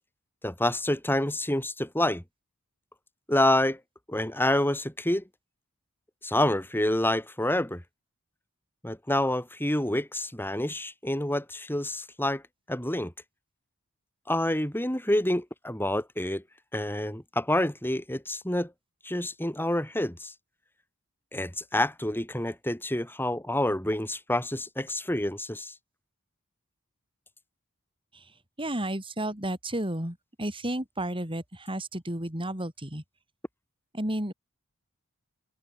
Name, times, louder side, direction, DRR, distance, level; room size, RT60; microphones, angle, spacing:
voice 1, 0.4-2.2 3.3-3.8 4.1-5.2 6.2-7.8 8.8-12.4 12.7-13.1 14.3-16.4 16.7-18.7 19.0-20.3 21.3-25.7, left 1 dB, 10° left, 5.7 m, -28 dB
voice 2, 28.6-33.0 33.9-34.3, right 1 dB, 25° right, 6.5 m, -32 dB
head